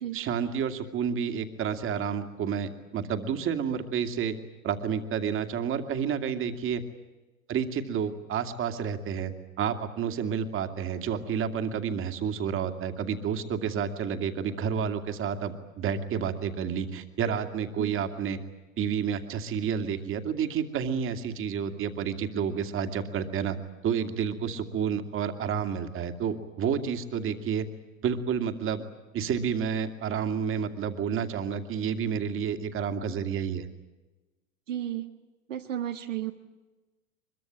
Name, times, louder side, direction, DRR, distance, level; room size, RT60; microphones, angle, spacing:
voice 1, 0.1-4.4 4.6-6.8 7.5-9.3 9.6-18.4 18.8-23.6 23.8-27.7 28.0-28.8 29.1-33.7, right 7 dB, 30° right, 7 dB, 2.3 m, -30 dB
voice 2, 34.7-35.1 35.5-36.3, right 11 dB, 65° right, 4 dB, 1.5 m, -33 dB
24.0 x 22.5 x 8.8 m, 1.1 s
figure-of-eight pair, 80°, 41 cm